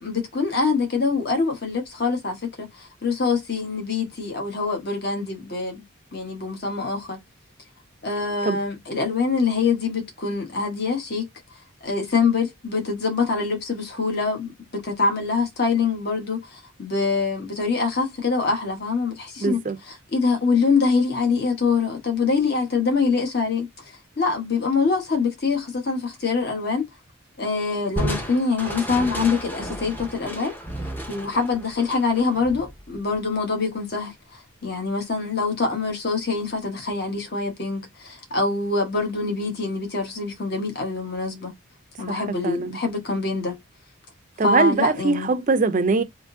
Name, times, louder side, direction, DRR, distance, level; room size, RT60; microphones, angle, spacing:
voice 1, 0.0-5.8 6.1-7.2 8.0-11.3 11.8-26.8 27.4-30.6 31.1-41.5 42.0-43.6 44.4-45.3, left 4 dB, 50° left, 1.1 m, -24 dB
voice 2, 19.4-19.8 42.1-42.8 44.4-46.0, right 4 dB, 35° right, 0.4 m, -22 dB
Crushing, 28.0-33.3, equal, 10° left, 0.6 m, -33 dB
3.6 x 2.6 x 2.6 m
head